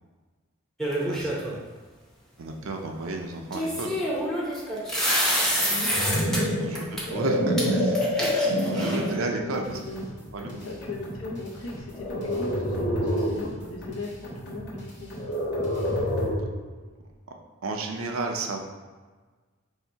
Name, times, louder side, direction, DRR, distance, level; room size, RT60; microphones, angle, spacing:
sound 1, 0.8-1.5 3.5-6.4 6.8-7.0 7.6-7.7 7.9-9.1, equal, ahead, 0.7 m, -27 dB
voice 1, 1.0-1.7 2.4-4.3 5.7-5.8 6.4-6.9 7.1-8.0 8.5-9.7 10.3-10.7 17.6-18.6, right 3 dB, 80° right, 3 dB, 0.5 m, -33 dB
sound 2, 5.6-9.3 9.9-10.2 11.9-13.5 15.1-16.6, equal, 30° left, 0.7 m, -27 dB
voice 2, 6.2-6.8 8.7-9.1 9.4-15.1, left 2 dB, 75° left, -1 dB, 0.7 m, -38 dB
sound 3, 9.5-16.4, equal, 55° left, 1.3 m, -41 dB
3.1 x 2.8 x 4.4 m, 1.4 s
head